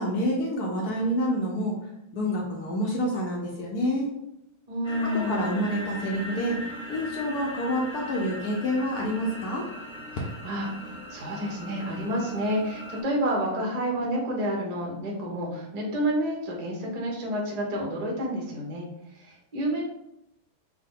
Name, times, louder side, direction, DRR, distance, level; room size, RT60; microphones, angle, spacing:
voice 1, 0.0-1.8 2.1-4.1 5.0-6.6 6.9-9.7, equal, 70° left, -1 dB, 0.9 m, -28 dB
voice 2, 4.7-5.5 10.4-18.8 19.1-19.8, equal, 80° right, -1 dB, 0.3 m, -29 dB
sound 1, 4.8-13.0, equal, 20° left, 0.8 m, -39 dB
4.8 x 2.2 x 3.7 m, 0.81 s
omnidirectional pair, 2.3 m